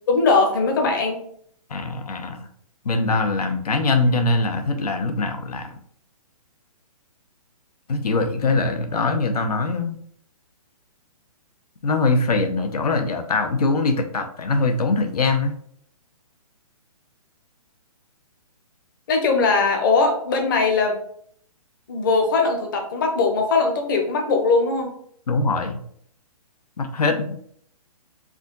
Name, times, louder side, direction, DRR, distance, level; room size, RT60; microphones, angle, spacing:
voice 1, 0.1-1.2 19.1-21.0 21.9-24.9, left 4 dB, 35° left, 3 dB, 0.8 m, -20 dB
voice 2, 1.7-2.5 2.8-5.7 7.9-10.0 11.8-15.5 25.3-25.8 26.8-27.4, left 3 dB, 90° left, 6 dB, 0.9 m, -22 dB
4.9 x 2.7 x 3.9 m, 0.63 s
hypercardioid pair, 170°, 19 cm